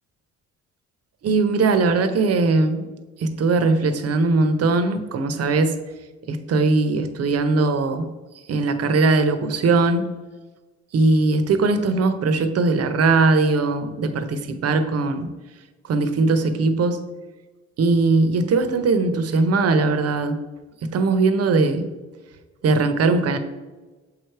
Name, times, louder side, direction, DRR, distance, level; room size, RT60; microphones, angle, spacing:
voice 1, 1.2-2.9 3.2-5.8 6.3-8.1 8.5-10.1 10.9-15.3 15.9-17.0 17.8-20.4 20.9-21.9 22.6-23.4, right 3 dB, 55° right, 9 dB, 0.7 m, -20 dB
7.2 x 3.2 x 4.5 m, 1.2 s
cardioid pair, 90°, 30 cm